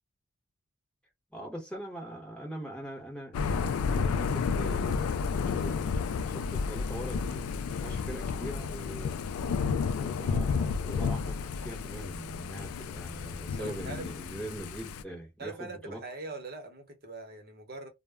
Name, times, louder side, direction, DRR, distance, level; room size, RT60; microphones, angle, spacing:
voice 1, 1.3-9.2 10.0-16.0, right 1 dB, 5° left, 0.9 m, -42 dB
Thunder / Rain, 3.3-15.0, left 5 dB, 75° left, 0.3 m, -31 dB
voice 2, 13.5-14.1 15.4-17.9, right 3 dB, 50° right, 0.8 m, -42 dB
2.1 x 2.0 x 3.4 m
head